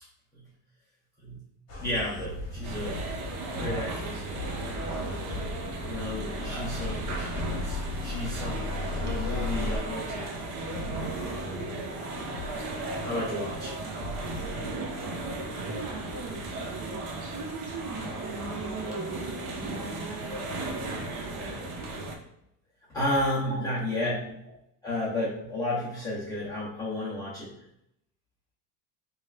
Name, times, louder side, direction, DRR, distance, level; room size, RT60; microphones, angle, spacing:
sound 1, 1.7-9.8, left 2 dB, 35° left, 1.3 m, -36 dB
voice 1, 1.8-3.0 3.5-5.2 5.9-10.3 11.2-12.0 13.0-13.7 22.9-24.2 24.8-27.5, left 1 dB, 10° left, -10 dB, 0.4 m, -33 dB
sound 2, 1.9-8.6 9.0-10.3 10.7-11.4 12.4-13.2 14.0-14.9 15.3-15.5, left 2 dB, 90° left, 0.6 m, -42 dB
sound 3, 2.6-22.2, right 2 dB, 85° right, 0.9 m, -35 dB
voice 2, 15.7-21.7 23.4-23.7 24.0-24.3, right 3 dB, 45° right, 0 dB, 0.9 m, -41 dB
5.4 x 2.3 x 2.2 m, 0.78 s
cardioid pair, 175°, 43 cm